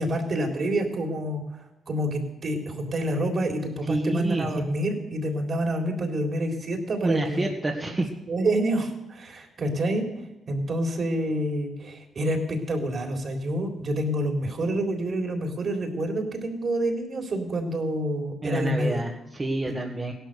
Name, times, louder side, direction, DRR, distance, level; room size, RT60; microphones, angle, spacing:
voice 1, 0.0-8.0 8.3-10.1 10.5-19.0 19.7-19.8, right 1 dB, 45° right, 2 dB, 3.7 m, -28 dB
voice 2, 3.9-4.7 7.0-8.1 18.4-20.1, right 2 dB, 25° right, 0 dB, 1.8 m, -28 dB
16.5 x 11.5 x 6.8 m, 0.93 s
cardioid pair, 90°, 0 cm